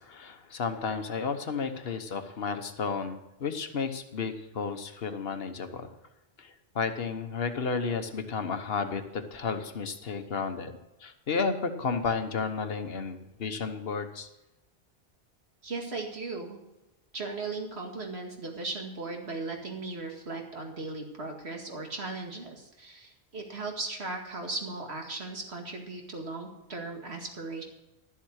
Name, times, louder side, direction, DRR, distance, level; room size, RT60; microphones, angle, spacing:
voice 1, 0.0-5.9 6.4-10.7 11.0-14.3, left 5 dB, 65° left, 8 dB, 1.3 m, -32 dB
voice 2, 15.6-16.6 17.1-27.6, right 3 dB, 75° right, 2 dB, 2.3 m, -37 dB
12.5 x 7.5 x 6.4 m, 0.99 s
omnidirectional pair, 1.1 m